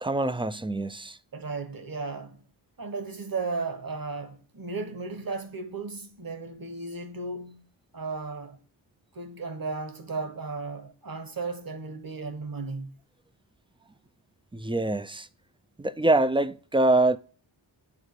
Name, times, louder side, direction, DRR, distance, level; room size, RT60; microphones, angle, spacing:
voice 1, 0.0-1.2 14.5-15.3 15.8-17.2, right 2 dB, 10° right, 0.5 m, -24 dB
voice 2, 1.3-2.4 2.8-7.6 7.9-8.6 9.1-12.9, right 4 dB, 45° right, 1.7 m, -35 dB
10.5 x 4.1 x 6.7 m
cardioid pair, 65°, 49 cm